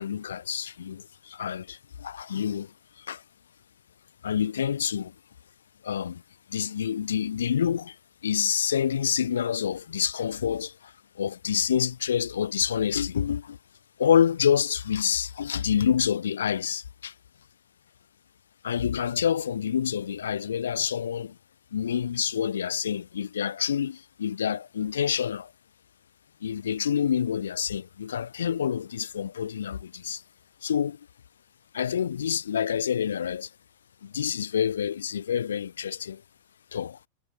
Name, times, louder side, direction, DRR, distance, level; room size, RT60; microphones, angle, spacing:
voice 1, 0.0-3.2 4.2-5.1 5.8-6.2 6.5-8.0 8.2-13.6 14.0-17.1 18.6-21.4 21.7-25.5 26.4-30.2 30.6-31.0 31.7-33.5 34.0-36.2 36.7-37.0, left 8 dB, 65° left, 5.0 m, -27 dB
figure-of-eight pair, 90°, 0 cm